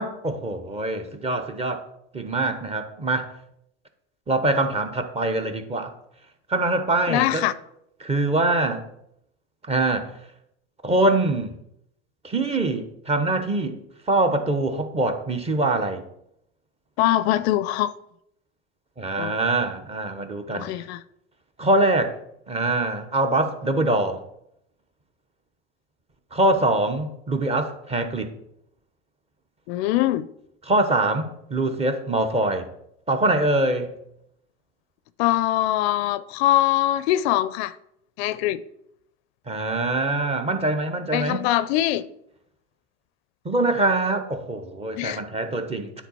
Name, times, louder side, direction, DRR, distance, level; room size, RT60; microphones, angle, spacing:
voice 1, 0.0-1.8 2.1-3.3 4.3-5.9 6.5-7.4 8.0-8.8 9.7-10.1 10.8-11.5 12.2-13.7 14.1-16.0 19.0-20.7 21.6-22.1 22.5-24.2 26.3-28.3 30.7-32.7 33.1-33.9 39.5-41.5 43.4-45.9, right 2 dB, 15° right, 0.8 m, -23 dB
voice 2, 7.1-7.5 17.0-17.9 19.2-19.3 20.5-21.0 29.7-30.3 35.2-37.7 38.2-38.6 41.1-42.0 45.0-45.2, left 14 dB, 60° left, 0.5 m, -22 dB
9.2 x 3.9 x 4.2 m
hypercardioid pair, 105°, 35 cm